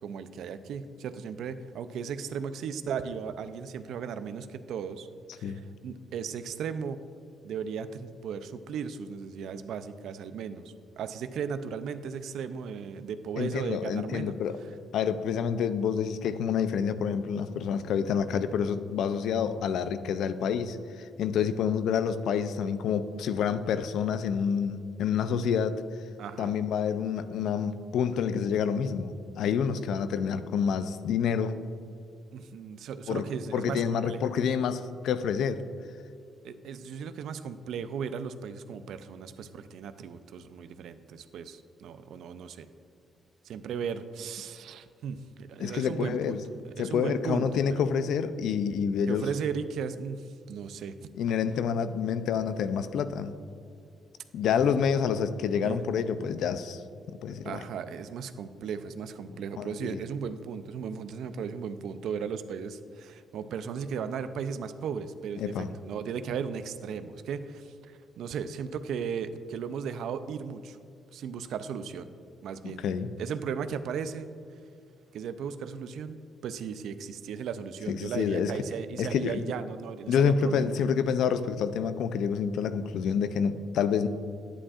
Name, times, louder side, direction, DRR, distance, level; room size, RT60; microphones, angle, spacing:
voice 1, 0.0-5.1 5.4-7.0 7.4-14.3 14.6-14.7 26.2-26.5 32.3-34.2 36.4-42.7 43.4-46.4 46.7-47.8 49.1-51.0 54.6-54.8 55.6-55.8 57.4-70.8 71.1-72.1 72.4-72.8 73.2-74.3 75.1-80.7, right 6 dB, 75° right, 11 dB, 0.4 m, -36 dB
voice 2, 13.4-14.6 14.9-25.8 26.4-31.6 33.1-33.2 33.5-35.6 45.6-46.4 46.8-49.3 51.2-53.3 54.3-56.8 57.1-57.6 59.6-60.0 65.4-65.7 72.6-73.1 77.9-78.5 79.0-79.4 80.1-84.1, left 7 dB, 80° left, 12 dB, 0.4 m, -28 dB
9.8 x 8.6 x 2.4 m, 2.3 s
cardioid pair, 90°, 0 cm